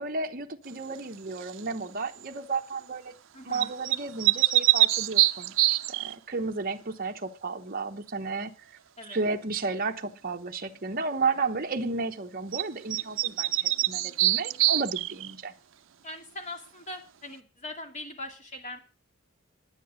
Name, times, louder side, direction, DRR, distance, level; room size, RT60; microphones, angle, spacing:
voice 1, 0.0-3.1 3.4-8.5 9.1-15.5, right 3 dB, 45° right, 1.0 m, -33 dB
sound 1, 1.4-1.7 3.5-6.1 12.5-12.6 12.9-15.3, right 17 dB, 65° right, 0.5 m, -24 dB
voice 2, 3.3-3.7 9.0-9.2 16.0-18.8, left 1 dB, 35° left, 2.5 m, -41 dB
10.0 x 9.7 x 6.3 m
head